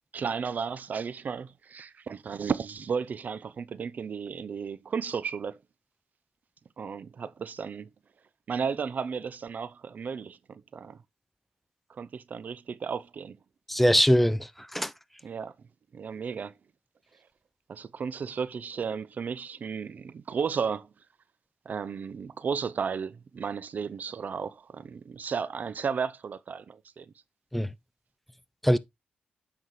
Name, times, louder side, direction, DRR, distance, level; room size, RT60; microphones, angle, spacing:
voice 1, 0.1-5.6 6.8-7.9 8.5-11.0 11.9-13.4 15.2-15.5 15.9-16.5 17.7-20.9 21.7-27.1, right 6 dB, 55° right, 0.6 m, -34 dB
voice 2, 13.7-14.9 27.5-27.7 28.6-28.8, equal, 5° left, 0.6 m, -22 dB
8.0 x 5.6 x 3.1 m
cardioid pair, 65°, 3 cm